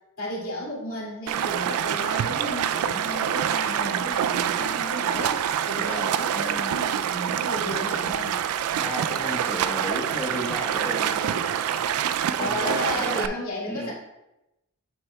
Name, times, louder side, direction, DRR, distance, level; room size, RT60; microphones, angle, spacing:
voice 1, 0.2-5.4 5.6-8.4 12.4-13.9, left 1 dB, 75° left, -4 dB, 2.4 m, -33 dB
Stream, 1.3-13.3, right 9 dB, 85° right, 0.3 m, -26 dB
voice 2, 5.8-6.7 8.8-11.5 12.4-13.4 13.7-13.9, left 1 dB, 10° left, -1 dB, 1.1 m, -34 dB
7.9 x 6.9 x 2.2 m, 0.92 s
head